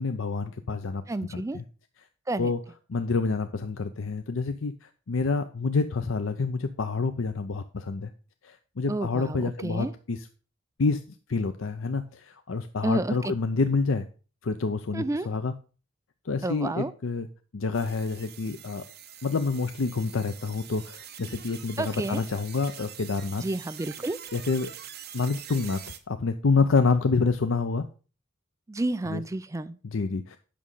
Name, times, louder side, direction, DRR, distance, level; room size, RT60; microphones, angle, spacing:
voice 1, 0.0-1.0 1.3-1.6 2.4-2.6 2.9-8.1 8.4-10.3 10.8-11.0 11.3-14.1 14.4-15.5 16.3-17.3 17.5-18.8 19.2-23.4 24.3-24.7 25.1-25.8 26.1-27.8 29.0-29.2 29.8-30.4, left 4 dB, 85° left, 8 dB, 0.6 m, -27 dB
voice 2, 1.1-1.6 2.3-2.5 8.9-9.9 12.8-13.1 14.9-15.3 16.4-16.9 21.8-22.2 23.4-24.2 28.7-29.8, right 2 dB, 15° right, 14 dB, 0.4 m, -30 dB
sound 1, 17.7-26.0, right 10 dB, 55° right, 1.0 m, -44 dB
8.6 x 6.2 x 5.4 m, 0.36 s
head